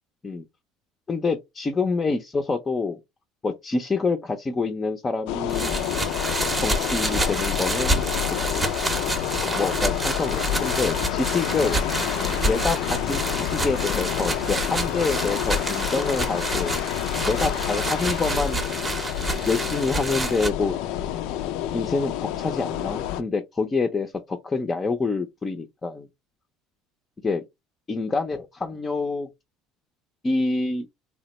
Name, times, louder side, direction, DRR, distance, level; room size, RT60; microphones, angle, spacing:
voice 1, 1.1-3.0 3.4-5.7 6.6-8.7 9.4-11.8 12.5-16.8 17.2-18.6 19.5-20.8 21.7-26.1 27.2-27.4 27.9-29.3 30.2-30.9, left 4 dB, 25° left, 0.5 m, -27 dB
sound 1, 5.3-23.2, left 11 dB, 75° left, 0.3 m, -28 dB
sound 2, 5.5-20.5, right 2 dB, 20° right, 0.7 m, -28 dB
3.3 x 2.1 x 3.0 m
supercardioid pair, 100°, 0 cm